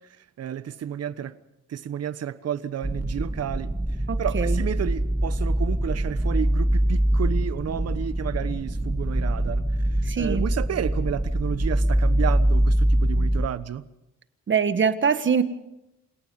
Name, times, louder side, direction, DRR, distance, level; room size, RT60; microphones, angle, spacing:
voice 1, 0.4-1.3 1.7-3.7 4.2-9.6 10.2-13.8, right 9 dB, 55° right, 1.2 m, -31 dB
sound 1, 2.8-13.5, right 1 dB, 5° right, 0.9 m, -24 dB
voice 2, 4.1-4.6 10.1-10.5 14.5-15.4, right 6 dB, 40° right, 1.5 m, -23 dB
28.5 x 18.0 x 5.4 m
cardioid pair, 90°, 30 cm